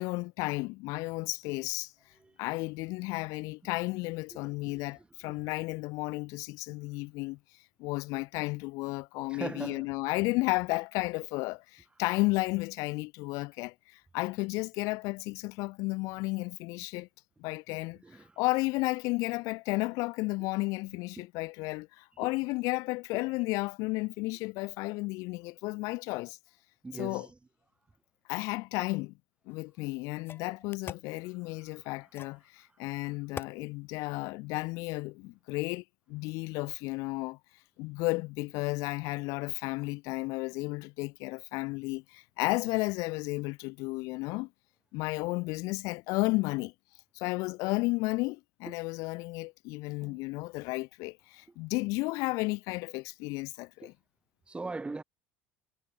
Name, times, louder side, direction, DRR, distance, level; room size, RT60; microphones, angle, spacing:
voice 1, 0.0-1.9 2.4-7.4 7.8-17.1 17.4-18.0 18.4-26.4 27.0-27.3 28.3-29.1 29.5-37.4 37.8-44.5 44.9-46.7 47.1-53.9, left 24 dB, 65° left, 0.5 m, -33 dB
voice 2, 9.3-10.0 18.0-18.3 21.2-21.3 22.2-22.3 26.8-27.3 48.7-48.8 50.0-50.2 53.8-53.9 54.5-55.0, right 3 dB, 15° right, 3.2 m, -40 dB
sound 1, 29.5-29.6 30.2-31.1 32.1-32.4 33.3-33.6, left 8 dB, 40° left, 1.3 m, -42 dB
hypercardioid pair, 70°, 6 cm